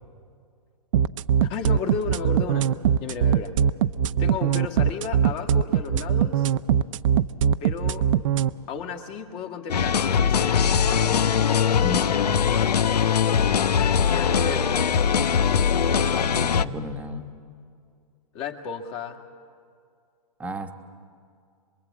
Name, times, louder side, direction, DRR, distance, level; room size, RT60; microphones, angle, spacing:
sound 1, 0.9-8.5, right 8 dB, 55° right, 0.7 m, -21 dB
voice 1, 1.4-2.7 3.0-3.5 4.2-6.5 7.6-8.1 8.7-10.6 13.4-13.7 14.1-14.8 18.3-19.2, left 6 dB, 35° left, 4 dB, 2.3 m, -33 dB
sound 2, 9.7-16.6, left 7 dB, 90° left, 0.8 m, -21 dB
voice 2, 11.8-12.4 16.1-17.2 20.4-20.7, left 2 dB, 5° right, 5 dB, 1.2 m, -33 dB
26.5 x 22.0 x 8.5 m, 2.3 s
hypercardioid pair, 140°, 20 cm